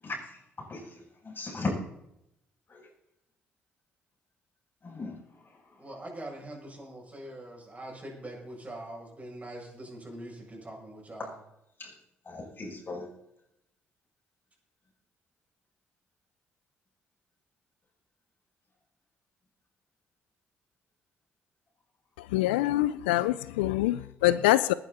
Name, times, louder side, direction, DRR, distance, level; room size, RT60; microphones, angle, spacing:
voice 1, 0.7-1.7 2.7-2.8 4.8-5.2 11.8-11.9 12.3-13.1, left 3 dB, 35° left, -2 dB, 7.2 m, -36 dB
voice 2, 5.8-11.3, right 1 dB, 25° right, -1 dB, 7.2 m, -43 dB
voice 3, 22.3-24.7, left 15 dB, 80° left, 17 dB, 0.4 m, -25 dB
20.0 x 10.0 x 4.1 m, 0.80 s
hypercardioid pair, 45°, 6 cm